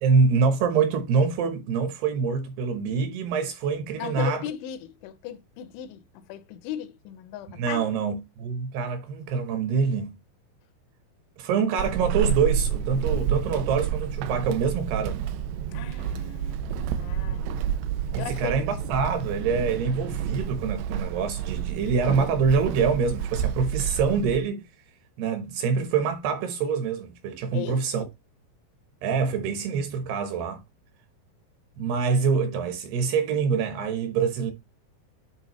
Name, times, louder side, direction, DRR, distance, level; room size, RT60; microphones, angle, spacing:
voice 1, 0.0-4.4 7.6-10.2 11.4-15.2 18.1-24.7 25.2-28.0 29.0-30.6 31.8-34.5, right 5 dB, 70° right, 2.7 m, -25 dB
voice 2, 4.0-7.9 15.7-16.6 17.0-17.4 18.2-18.5 18.8-19.0 27.5-27.8, left 11 dB, 85° left, 2.9 m, -37 dB
Walk footsteps / Squeak, 11.8-24.4, right 8 dB, 90° right, 2.4 m, -29 dB
11.0 x 3.7 x 3.0 m
omnidirectional pair, 5.5 m